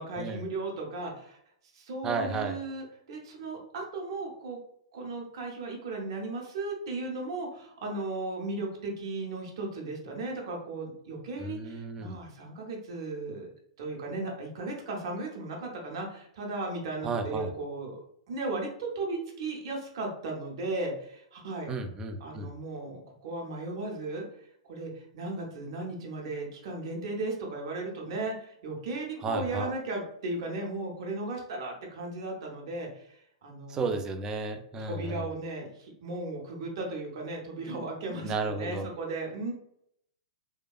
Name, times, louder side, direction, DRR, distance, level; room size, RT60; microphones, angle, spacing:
voice 1, 0.0-1.4 1.7-4.6 4.9-13.5 13.8-18.0 18.3-21.7 22.2-24.2 24.6-33.9 34.8-39.5, right 2 dB, 50° right, 0 dB, 0.7 m, -36 dB
voice 2, 2.0-2.6 11.4-12.2 17.0-17.5 21.7-22.5 29.2-29.7 33.7-35.3 38.2-38.9, right 3 dB, 20° right, 6 dB, 0.3 m, -33 dB
2.8 x 2.2 x 2.3 m, 0.71 s
figure-of-eight pair, 105°, 3 cm